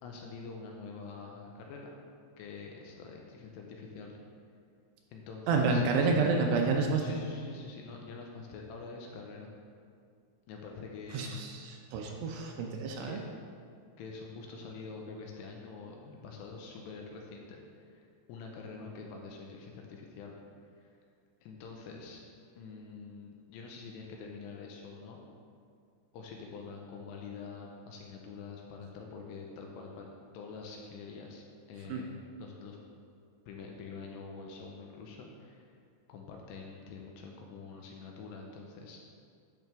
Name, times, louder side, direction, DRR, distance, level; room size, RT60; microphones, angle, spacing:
voice 1, 0.0-2.0 2.4-4.2 5.1-5.8 7.0-9.5 10.5-11.4 13.0-13.2 14.0-18.0 18.3-20.3 20.8-20.9 21.4-22.2 22.6-25.2 26.1-30.1 30.3-32.1 32.4-32.8 33.5-35.7 36.1-39.0, left 4 dB, 80° left, 0 dB, 2.6 m, -46 dB
voice 2, 5.5-7.0 11.1-13.2 31.9-32.0, right 4 dB, 80° right, 1 dB, 2.6 m, -29 dB
10.5 x 5.8 x 3.4 m, 2.2 s
omnidirectional pair, 5.2 m